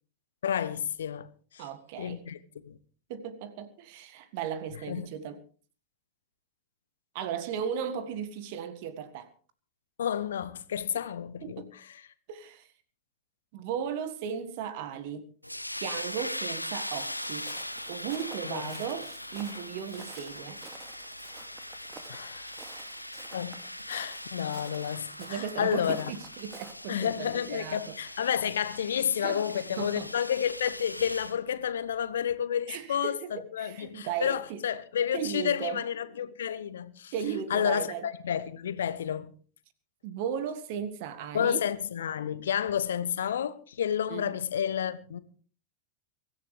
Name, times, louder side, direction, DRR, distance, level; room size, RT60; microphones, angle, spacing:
voice 1, 0.4-1.3 1.5-1.7 2.0-2.4 2.6-2.8 4.9-5.1 10.0-11.7 18.4-18.8 22.1-22.6 23.3-23.6 23.9-26.1 26.9-37.1 37.5-39.3 41.3-45.2, left 9 dB, 65° left, 1.0 m, -30 dB
voice 2, 1.6-2.3 3.1-5.4 7.1-9.3 11.4-11.7 12.3-12.7 13.5-15.3 15.7-17.5 17.9-20.6 25.2-28.0 29.2-30.1 32.7-34.6 35.1-35.8 37.1-38.1 40.0-41.6 44.1-44.3, right 8 dB, 50° right, 1.7 m, -36 dB
sound 1, 15.4-31.4, left 1 dB, 90° left, 1.1 m, -40 dB
Walk footsteps, 16.9-26.7, right 5 dB, 25° right, 2.3 m, -51 dB
23.5 x 14.5 x 3.3 m
figure-of-eight pair, 90°, 0 cm